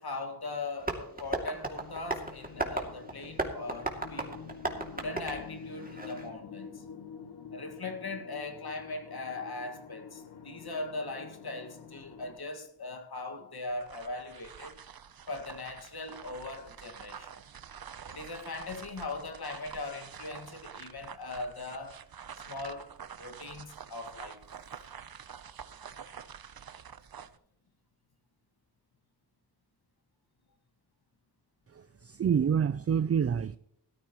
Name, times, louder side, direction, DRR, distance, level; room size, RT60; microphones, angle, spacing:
voice 1, 0.0-4.4 4.9-6.8 7.5-14.8 15.3-17.4 18.1-22.0 22.5-24.4, left 2 dB, 65° left, 2.0 m, -40 dB
Tap, 0.8-6.3, right 2 dB, 20° right, 2.6 m, -36 dB
sound 1, 1.8-12.4, left 7 dB, 90° left, 1.1 m, -47 dB
sound 2, 13.7-27.4, right 7 dB, 60° right, 0.8 m, -47 dB
voice 2, 31.7-33.6, right 7 dB, 40° right, 0.4 m, -27 dB
17.0 x 13.5 x 3.1 m
wide cardioid pair, 85°, 40 cm